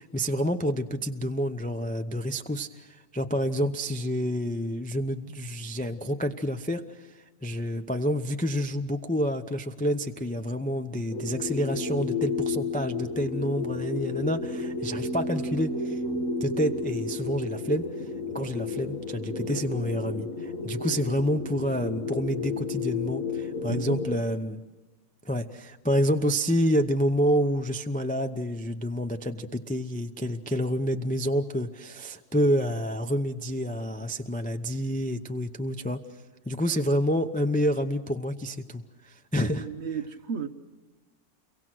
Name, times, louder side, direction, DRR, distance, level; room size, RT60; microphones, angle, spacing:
voice 1, 0.0-7.1 7.4-16.0 16.4-17.9 18.3-24.6 25.2-36.0 36.5-39.7, equal, 10° left, 0.4 m, -28 dB
sound 1, 11.1-24.2, left 3 dB, 60° left, 1.8 m, -32 dB
voice 2, 23.7-24.1 39.4-40.5, right 5 dB, 50° right, 1.2 m, -34 dB
29.0 x 23.5 x 6.2 m
omnidirectional pair, 1.6 m